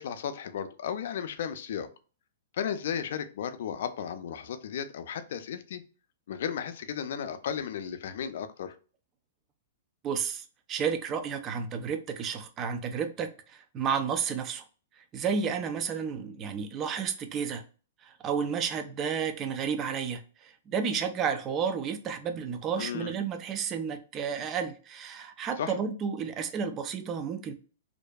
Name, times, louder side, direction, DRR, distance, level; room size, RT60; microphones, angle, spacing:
voice 1, 0.0-1.9 2.6-5.8 6.3-8.7 22.8-23.1 25.6-25.7, left 8 dB, 65° left, 0.4 m, -34 dB
voice 2, 10.0-14.6 15.1-17.6 18.0-27.5, right 6 dB, 25° right, 0.3 m, -32 dB
2.6 x 2.2 x 2.2 m
hypercardioid pair, 155°, 0 cm